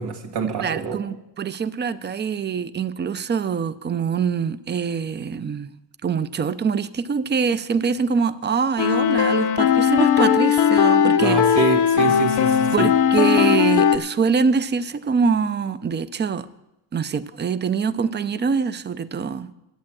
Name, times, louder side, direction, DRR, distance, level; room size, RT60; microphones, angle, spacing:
voice 1, 0.0-1.0 11.2-12.9, right 5 dB, 85° right, 3 dB, 1.9 m, -26 dB
voice 2, 0.6-5.7 6.0-11.4 12.7-16.5 16.9-19.5, right 6 dB, 25° right, 13 dB, 0.6 m, -24 dB
sound 1, 8.8-14.0, left 8 dB, 65° left, 0.9 m, -18 dB
11.5 x 8.5 x 7.5 m, 0.90 s
cardioid pair, 105°, 40 cm